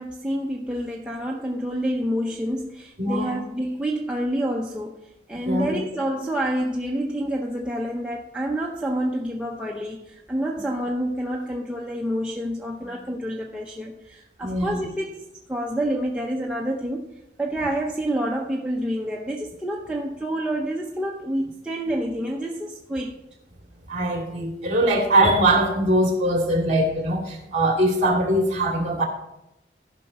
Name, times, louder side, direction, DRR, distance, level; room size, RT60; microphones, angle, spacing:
voice 1, 0.0-5.0 5.3-17.1 17.4-23.2, right 1 dB, 5° right, -2 dB, 0.6 m, -28 dB
voice 2, 3.0-3.4 5.4-5.7 14.4-14.8 23.9-29.0, right 1 dB, 40° right, 1 dB, 2.2 m, -21 dB
15.0 x 5.7 x 4.1 m, 0.86 s
head